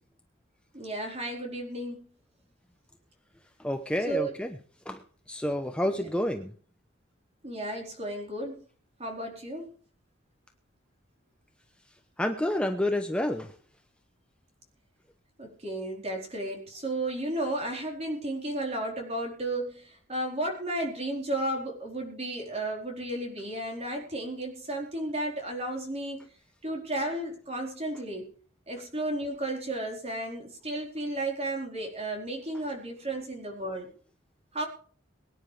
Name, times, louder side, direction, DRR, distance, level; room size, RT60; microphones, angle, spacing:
voice 1, 0.7-2.1 4.1-4.3 5.9-6.1 7.4-8.6 9.0-9.7 15.4-26.3 26.6-28.3 28.7-33.9 34.5-34.7, right 1 dB, 30° right, 1 dB, 4.2 m, -33 dB
voice 2, 3.6-4.6 4.9-6.5 12.2-13.6, left 1 dB, 5° left, 5 dB, 0.9 m, -29 dB
23.0 x 9.9 x 3.4 m, 0.43 s
head